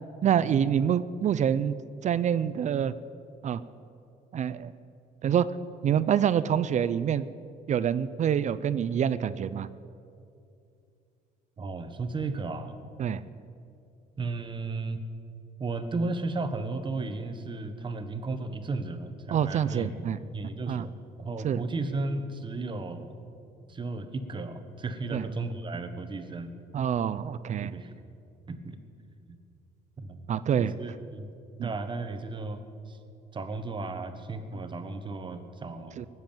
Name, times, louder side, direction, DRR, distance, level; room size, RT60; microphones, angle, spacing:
voice 1, 0.2-1.7 2.0-2.9 3.4-3.6 4.3-4.7 5.2-5.5 5.8-7.2 7.7-9.7 13.0-13.2 19.3-20.2 20.7-20.9 21.4-21.6 25.1-25.2 26.7-27.7 30.3-30.7 31.6-31.7 36.0-36.1, right 9 dB, 45° right, 15 dB, 0.5 m, -26 dB
voice 2, 11.6-12.7 14.2-15.0 15.6-20.1 20.3-20.9 21.2-23.2 23.7-26.5 27.6-27.9 28.5-28.8 29.3-29.4 30.0-30.3 30.6-31.3 31.6-32.6 32.9-33.0 33.3-36.0, right 3 dB, 30° right, 8 dB, 1.4 m, -34 dB
19.0 x 7.7 x 9.0 m, 2.5 s
cardioid pair, 110°, 17 cm